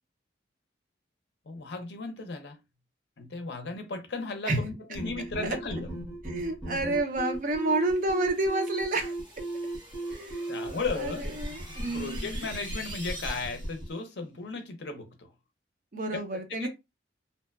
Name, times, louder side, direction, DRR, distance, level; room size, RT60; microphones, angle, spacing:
voice 1, 1.5-2.6 3.2-5.9 10.1-10.2 10.5-11.2 11.9-15.3 16.1-16.7, left 3 dB, 65° left, 0.6 m, -35 dB
sound 1, 4.9-13.9, right 1 dB, 5° left, 0.8 m, -36 dB
voice 2, 6.2-9.1 10.1-12.5 15.9-16.7, right 2 dB, 45° right, 0.5 m, -30 dB
sound 2, 7.9-13.9, right 1 dB, 25° right, 1.0 m, -46 dB
2.7 x 2.1 x 2.3 m
head